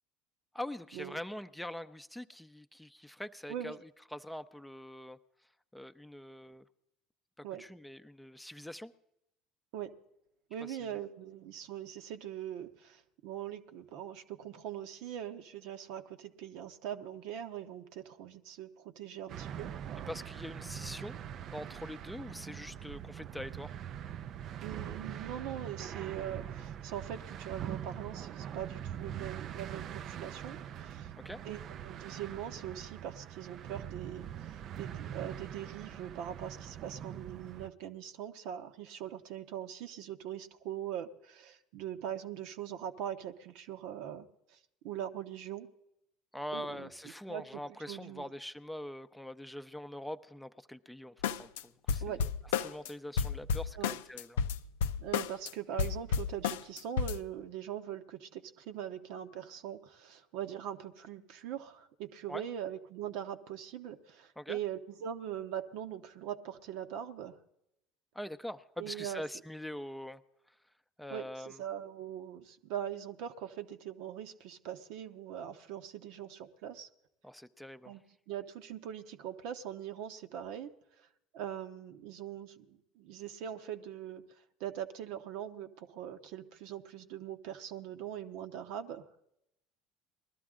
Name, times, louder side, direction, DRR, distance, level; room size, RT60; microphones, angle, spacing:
voice 1, 0.5-3.8 4.1-5.2 5.7-6.6 7.4-8.9 10.7-11.0 20.1-21.2 21.5-23.8 31.2-31.4 46.3-52.3 52.6-54.4 62.3-62.4 64.4-64.6 68.1-70.2 71.0-71.6 77.2-77.9, left 1 dB, 5° left, 10 dB, 0.6 m, -43 dB
voice 2, 10.5-19.7 24.6-31.1 31.4-44.6 44.8-45.7 46.5-46.9 47.3-47.6 47.9-48.3 52.0-52.2 53.8-53.9 55.0-67.4 68.8-69.2 71.1-76.9 77.9-78.0 78.3-80.7 81.0-81.1 81.3-89.1, right 10 dB, 65° right, 8 dB, 0.9 m, -42 dB
sound 1, 19.3-37.7, right 9 dB, 50° right, 0.5 m, -43 dB
sound 2, 51.2-51.6 51.9-52.9 53.2-55.5 55.8-57.2, left 6 dB, 80° left, 0.5 m, -31 dB
20.0 x 13.0 x 3.7 m, 0.82 s
hypercardioid pair, 70°, 0 cm